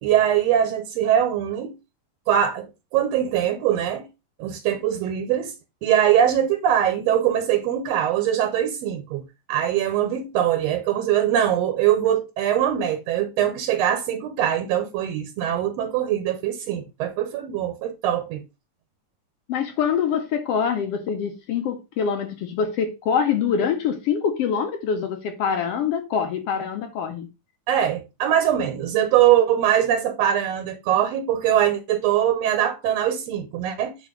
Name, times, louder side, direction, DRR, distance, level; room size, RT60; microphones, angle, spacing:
voice 1, 0.0-1.7 2.3-4.1 4.4-5.5 5.8-18.4 27.7-34.1, right 10 dB, 70° right, 1.7 m, -22 dB
voice 2, 19.5-27.3, left 7 dB, 75° left, 1.4 m, -25 dB
8.2 x 3.0 x 5.1 m
omnidirectional pair, 3.6 m